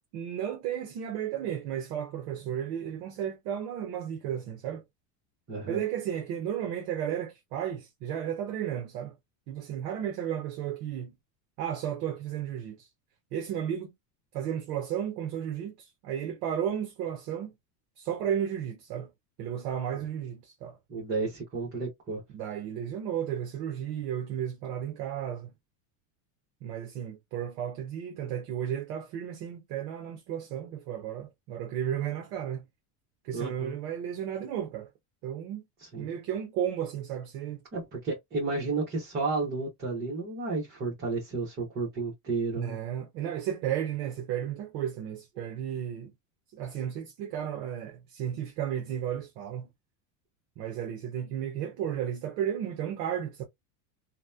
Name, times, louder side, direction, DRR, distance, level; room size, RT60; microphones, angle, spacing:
voice 1, 0.1-4.8 5.7-9.2 9.5-11.1 11.6-12.9 13.3-13.9 14.3-17.5 18.0-19.1 19.4-20.8 22.3-25.5 26.6-32.7 33.2-34.9 35.2-35.7 36.0-37.6 42.6-46.1 46.5-49.7 50.6-53.4, right 9 dB, 45° right, 0.7 m, -33 dB
voice 2, 5.5-5.8 20.9-22.2 33.3-33.7 35.8-36.1 37.7-42.8, right 3 dB, 20° right, 0.9 m, -32 dB
2.8 x 2.2 x 2.2 m
cardioid pair, 165°, 47 cm